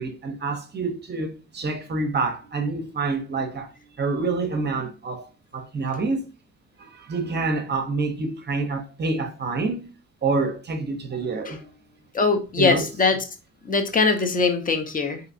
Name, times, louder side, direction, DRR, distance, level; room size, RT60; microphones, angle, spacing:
voice 1, 0.0-3.7 4.0-5.3 5.5-6.3 6.8-9.9 10.2-11.7 12.6-12.8, right 3 dB, 35° right, 0.6 m, -27 dB
voice 2, 12.1-13.2 13.7-15.2, left 4 dB, 30° left, 0.6 m, -21 dB
3.2 x 2.8 x 2.6 m
cardioid pair, 90°, 30 cm